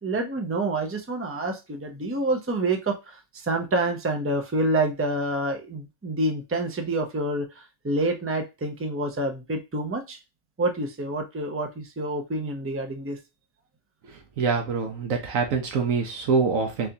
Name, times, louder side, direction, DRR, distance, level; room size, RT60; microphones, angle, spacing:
voice 1, 0.0-7.5 7.8-10.2 10.6-13.2, right 2 dB, 20° right, 4 dB, 0.4 m, -27 dB
voice 2, 14.4-16.9, right 5 dB, 80° right, 3 dB, 1.2 m, -25 dB
4.3 x 2.6 x 2.7 m, 0.25 s
omnidirectional pair, 1.3 m